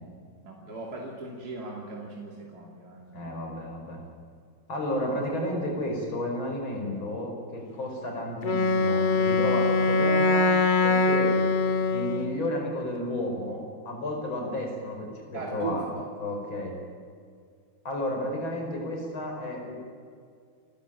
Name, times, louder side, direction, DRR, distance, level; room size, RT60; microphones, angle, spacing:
voice 1, 0.5-3.1 15.3-16.0, right 3 dB, 50° right, -2 dB, 3.3 m, -38 dB
voice 2, 3.1-4.0 4.7-10.5 10.8-11.4 11.9-15.9 16.2-16.8 17.8-19.7, left 1 dB, 85° left, 1 dB, 5.9 m, -32 dB
Wind instrument woodwind instrument, 8.4-12.4, left 3 dB, 50° left, 0.6 m, -23 dB
30.0 x 13.0 x 9.1 m, 2.2 s
omnidirectional pair, 2.1 m